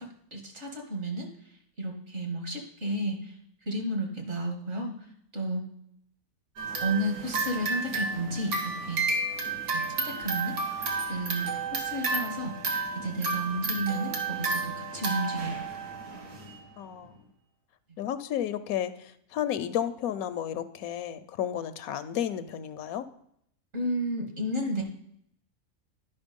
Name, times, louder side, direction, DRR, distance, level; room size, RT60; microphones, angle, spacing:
voice 1, 0.3-1.3 1.8-3.4 3.7-4.9 5.3-5.6 6.8-9.0 9.7-10.5 11.1-12.6 12.9-15.6 23.7-24.8, right 1 dB, 50° right, 2 dB, 2.2 m, -32 dB
sound 1, 6.6-16.6, right 3 dB, 75° right, 2.0 m, -32 dB
voice 2, 16.8-17.2 18.0-23.1, left 10 dB, 75° left, 12 dB, 1.0 m, -32 dB
11.0 x 5.7 x 5.2 m, 0.71 s
omnidirectional pair, 1.6 m